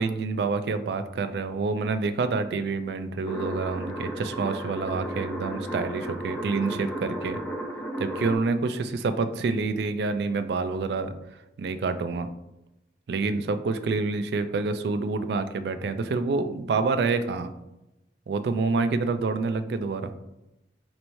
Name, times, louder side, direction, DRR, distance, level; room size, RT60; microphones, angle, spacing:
voice 1, 0.0-7.4 8.0-11.1 11.6-12.3 13.1-17.5 18.3-20.1, right 4 dB, 65° right, 10 dB, 0.3 m, -27 dB
sound 1, 3.3-8.4, right 1 dB, 10° left, 0.4 m, -34 dB
4.3 x 3.0 x 2.6 m, 0.93 s
head